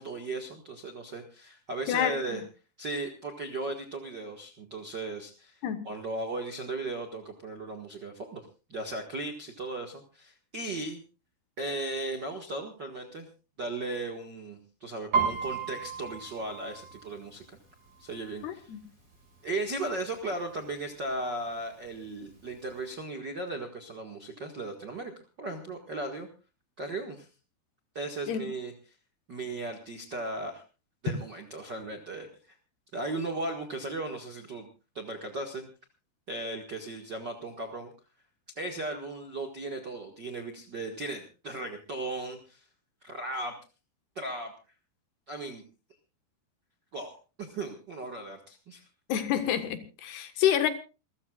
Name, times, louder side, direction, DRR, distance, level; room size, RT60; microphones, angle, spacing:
voice 1, 0.0-2.4 2.8-11.0 11.6-13.3 13.6-17.6 18.0-18.7 19.4-25.1 25.4-26.3 26.8-27.3 27.9-28.7 29.3-30.6 31.0-32.5 32.9-34.7 34.9-35.7 36.3-37.9 38.5-42.6 43.0-43.5 44.1-44.5 45.3-45.6 46.9-48.8, right 2 dB, 50° right, 3 dB, 1.3 m, -36 dB
voice 2, 1.9-2.4 5.6-5.8 18.4-18.8 28.3-28.4 49.1-50.7, left 10 dB, 75° left, 9 dB, 3.4 m, -28 dB
Piano, 15.1-18.8 19.1-19.5 19.9-20.5 21.1-21.2 21.4-22.5 22.8-22.9, right 6 dB, 20° right, 6.8 m, -33 dB
27.5 x 14.5 x 2.4 m, 0.33 s
omnidirectional pair, 4.9 m